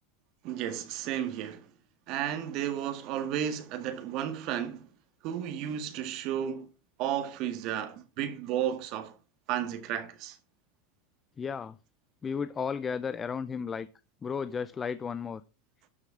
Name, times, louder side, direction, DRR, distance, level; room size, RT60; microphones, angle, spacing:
voice 1, 0.4-1.7 2.1-4.9 5.2-6.7 7.0-9.1 9.5-10.4, right 10 dB, 55° right, 1.7 m, -33 dB
voice 2, 11.4-11.8 12.2-13.9 14.2-15.4, left 6 dB, 20° left, 0.5 m, -33 dB
12.5 x 6.6 x 4.9 m
supercardioid pair, 125°, 0 cm